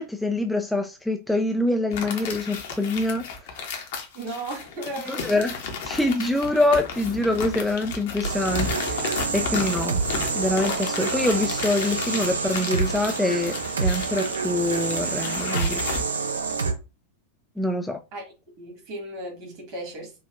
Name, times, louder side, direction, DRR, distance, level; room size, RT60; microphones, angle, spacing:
voice 1, 0.0-3.2 5.1-5.5 5.9-10.0 10.3-15.8 17.6-18.0, left 2 dB, 5° left, 0.3 m, -25 dB
sound 1, 1.9-16.0, left 5 dB, 55° left, 0.9 m, -33 dB
voice 2, 4.1-5.5 9.7-9.9 18.1-18.2 18.6-20.1, right 1 dB, 45° right, 1.8 m, -35 dB
sound 2, 8.2-16.7, right 4 dB, 75° right, 0.7 m, -27 dB
5.0 x 2.4 x 2.5 m
figure-of-eight pair, 90°, 0 cm